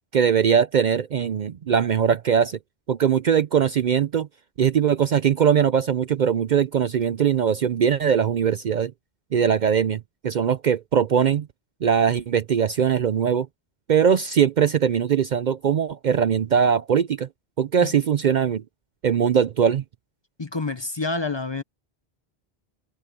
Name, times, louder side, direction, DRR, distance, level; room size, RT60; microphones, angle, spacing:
voice 1, 0.1-2.6 2.9-4.3 4.6-8.9 9.3-11.5 11.8-13.5 13.9-17.3 17.6-18.6 19.0-19.8, right 8 dB, 55° right, 0.6 m, -21 dB
voice 2, 20.4-21.6, left 3 dB, 30° left, 0.8 m, -28 dB
omnidirectional pair, 1.1 m